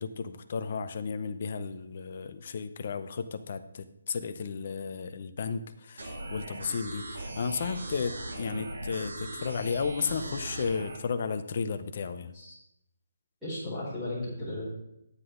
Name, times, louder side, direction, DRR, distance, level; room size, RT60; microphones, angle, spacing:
voice 1, 0.0-12.3, left 5 dB, 35° left, 10 dB, 0.7 m, -34 dB
sound 1, 6.0-11.0, right 1 dB, 65° right, 2.3 m, -39 dB
voice 2, 13.4-14.6, left 1 dB, ahead, -12 dB, 4.5 m, -36 dB
9.9 x 9.7 x 3.8 m, 0.82 s
hypercardioid pair, 180°, 0 cm